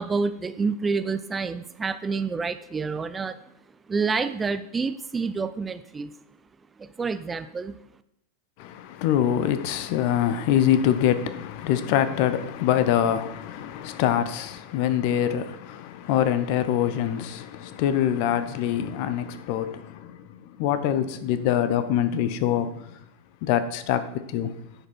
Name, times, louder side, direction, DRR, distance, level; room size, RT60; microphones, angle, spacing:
voice 1, 0.0-3.4 3.9-6.1 6.8-7.8, right 4 dB, 15° right, 0.4 m, -28 dB
voice 2, 8.6-20.3 20.6-22.9 23.4-24.0 24.3-24.5, left 10 dB, 45° left, 0.8 m, -24 dB
9.9 x 5.0 x 6.0 m
figure-of-eight pair, 90°, 0 cm